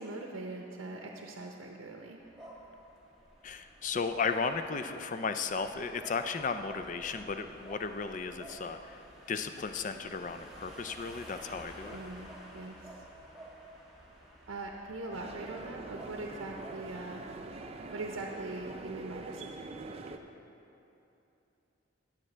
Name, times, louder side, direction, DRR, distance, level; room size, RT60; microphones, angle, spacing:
voice 1, 0.0-2.2 11.9-12.8 14.5-17.3 17.9-19.5, right 2 dB, 90° right, 1 dB, 0.7 m, -41 dB
sound 1, 2.2-18.0, right 1 dB, ahead, 1.5 m, -52 dB
voice 2, 3.4-9.0 9.3-12.0, left 5 dB, 40° left, 8 dB, 0.4 m, -35 dB
sound 2, 15.1-20.2, right 2 dB, 30° right, 0.4 m, -44 dB
17.5 x 7.4 x 3.3 m, 2.9 s
head